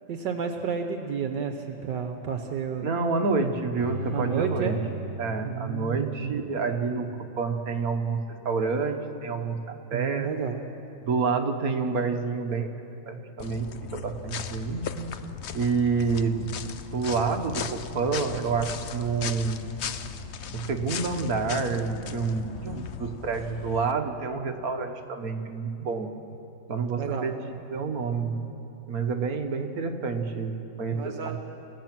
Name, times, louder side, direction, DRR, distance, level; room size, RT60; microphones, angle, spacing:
voice 1, 0.1-2.9 4.1-4.8 5.4-6.4 9.9-10.6 22.6-22.9 27.0-27.3 30.9-31.4, right 6 dB, 70° right, 5 dB, 1.6 m, -31 dB
voice 2, 2.8-4.8 5.2-10.3 11.0-12.7 13.1-15.1 15.5-16.5 16.9-19.8 20.5-26.1 26.7-27.4 27.7-28.4 28.9-31.4, right 4 dB, 55° right, 6 dB, 1.6 m, -28 dB
Bowed string instrument, 3.8-6.9 7.3-7.4, right 1 dB, 30° right, 5.7 m, -37 dB
sound 1, 13.4-23.9, left 7 dB, 60° left, 0.7 m, -37 dB
29.5 x 16.5 x 6.0 m, 2.8 s
omnidirectional pair, 2.0 m